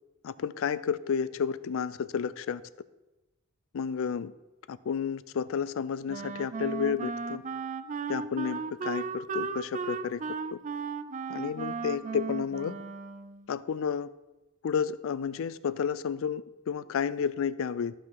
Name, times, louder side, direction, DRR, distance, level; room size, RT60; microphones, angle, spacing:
voice 1, 0.2-2.6 3.7-4.3 4.7-7.4 8.1-10.2 10.5-10.6 11.3-12.7 13.5-14.1 14.6-17.9, left 7 dB, 65° left, 16 dB, 0.4 m, -31 dB
Wind instrument woodwind instrument, 6.1-13.5, right 5 dB, 35° right, 0.4 m, -36 dB
12.0 x 5.6 x 4.7 m, 1.0 s
head